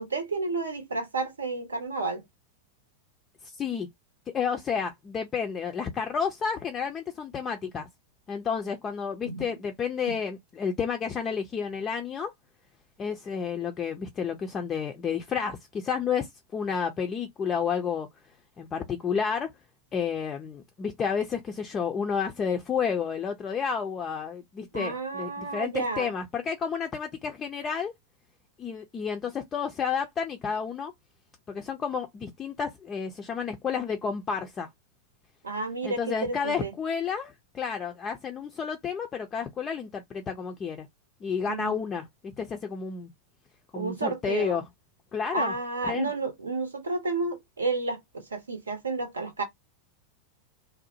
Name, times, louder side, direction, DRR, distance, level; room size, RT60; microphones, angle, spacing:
voice 1, 0.0-2.2 9.3-9.5 10.1-10.2 24.7-26.1 35.4-36.7 41.5-41.8 43.7-44.6 45.3-49.4, right 3 dB, 75° right, 0.7 m, -31 dB
voice 2, 3.5-3.9 4.3-7.9 8.3-12.3 13.0-18.1 18.6-19.5 19.9-27.9 28.6-30.9 31.5-34.7 35.8-40.9 41.2-43.1 43.7-44.6 45.1-45.5 45.8-46.1, left 6 dB, 25° left, 0.4 m, -31 dB
2.6 x 2.0 x 2.7 m
figure-of-eight pair, 90°, 0 cm